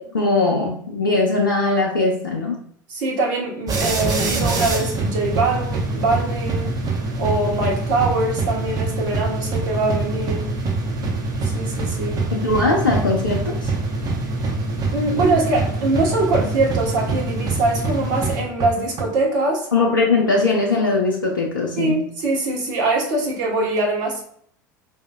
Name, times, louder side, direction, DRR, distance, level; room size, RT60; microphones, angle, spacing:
voice 1, 0.1-2.5 12.3-13.7 19.7-22.0, left 3 dB, 90° left, -2 dB, 0.6 m, -20 dB
voice 2, 2.9-6.7 7.1-10.5 11.4-12.2 14.9-19.7 21.8-24.2, right 2 dB, 65° right, -1 dB, 1.2 m, -23 dB
sound 1, 3.7-19.0, right 3 dB, 35° right, 0.9 m, -24 dB
4.8 x 2.7 x 2.2 m, 0.63 s
figure-of-eight pair, 75°, 11 cm